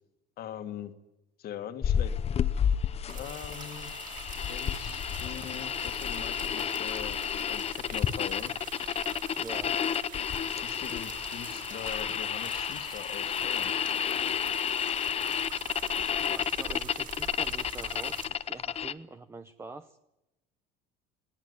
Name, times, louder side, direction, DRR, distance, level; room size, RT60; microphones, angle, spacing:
voice 1, 0.4-0.9 1.4-2.2 3.1-3.9 4.5-8.5 10.6-13.7, left 10 dB, 55° left, 8 dB, 2.0 m, -42 dB
sound 1, 1.8-18.9, left 8 dB, 35° left, 0.8 m, -31 dB
sound 2, 3.1-18.3, right 7 dB, 45° right, 5.5 m, -45 dB
voice 2, 9.4-9.8 16.3-20.0, right 3 dB, 15° right, 10 dB, 0.8 m, -45 dB
19.5 x 18.5 x 9.7 m, 0.94 s
cardioid pair, 135°, 19 cm